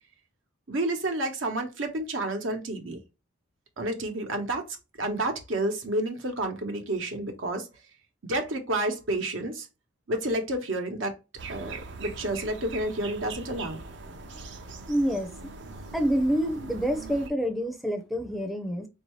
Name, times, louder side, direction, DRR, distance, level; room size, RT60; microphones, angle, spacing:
voice 1, 0.7-3.0 3.8-4.7 5.0-7.7 8.2-9.7 10.1-11.1 11.5-13.8, right 1 dB, 80° right, 1.0 m, -30 dB
sound 1, 11.4-17.3, right 4 dB, 65° right, 0.6 m, -42 dB
voice 2, 14.9-15.5 15.9-18.9, equal, ahead, 0.4 m, -27 dB
4.4 x 2.7 x 3.1 m
head